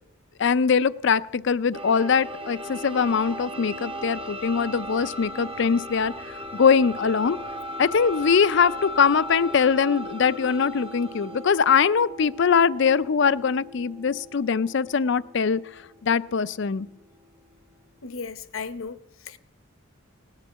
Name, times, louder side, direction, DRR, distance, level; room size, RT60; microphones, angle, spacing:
voice 1, 0.4-6.1 6.5-7.4 7.8-15.6 16.0-16.9, left 6 dB, 55° left, 0.4 m, -22 dB
sound 1, 1.7-17.3, equal, 25° right, 0.9 m, -38 dB
voice 2, 18.0-19.4, left 5 dB, 75° left, 0.9 m, -36 dB
18.5 x 9.8 x 7.3 m
head